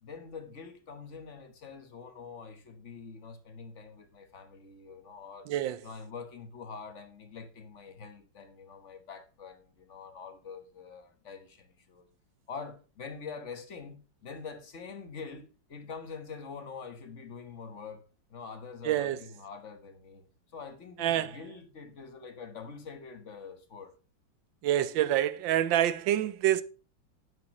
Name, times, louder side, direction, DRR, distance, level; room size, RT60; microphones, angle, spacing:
voice 1, 0.0-5.5 5.8-12.1 12.5-20.2 20.5-23.9, left 5 dB, 40° left, 1.5 m, -45 dB
voice 2, 5.5-5.8 18.8-19.2 21.0-21.3 24.6-26.6, right 12 dB, 85° right, 1.4 m, -27 dB
9.5 x 9.0 x 3.0 m
omnidirectional pair, 2.0 m